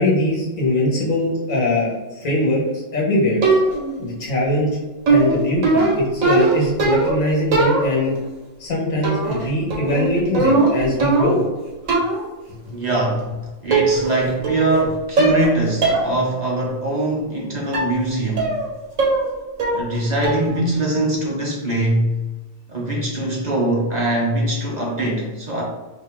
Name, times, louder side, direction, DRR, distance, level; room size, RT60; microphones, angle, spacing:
voice 1, 0.0-3.4 4.0-4.8 5.1-8.1 8.6-11.4, left 1 dB, 90° left, -3 dB, 1.7 m, -21 dB
sound 1, 3.4-4.0 5.1-7.2 7.5-8.2 9.0-9.4 9.7-11.5 11.9-12.3 13.2-13.3 13.7-14.2 14.4-14.8 15.2-15.5 15.8-16.1 16.5-16.6 17.7-18.0 18.4-18.7 19.0-19.3 19.6-20.0 20.2-20.6, right 3 dB, 85° right, 1.5 m, -19 dB
voice 2, 12.7-13.2 13.6-18.5 19.7-22.1 22.7-25.6, right 1 dB, 40° right, -3 dB, 0.8 m, -22 dB
4.0 x 3.0 x 3.6 m, 1.2 s
omnidirectional pair, 1.3 m